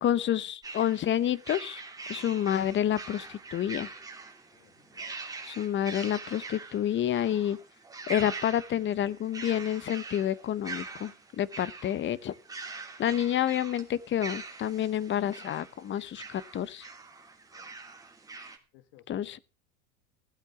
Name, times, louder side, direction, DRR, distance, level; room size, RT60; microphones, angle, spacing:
voice 1, 0.0-1.8 2.1-3.9 5.4-7.6 8.1-12.3 13.0-16.9 19.1-19.4, left 10 dB, 30° left, 1.0 m, -29 dB
sound 1, 0.6-18.6, right 4 dB, 10° right, 3.1 m, -43 dB
voice 2, 4.5-5.1 17.5-17.7 18.7-19.4, left 12 dB, 60° left, 2.5 m, -60 dB
16.0 x 8.1 x 7.1 m
hypercardioid pair, 105°, 40 cm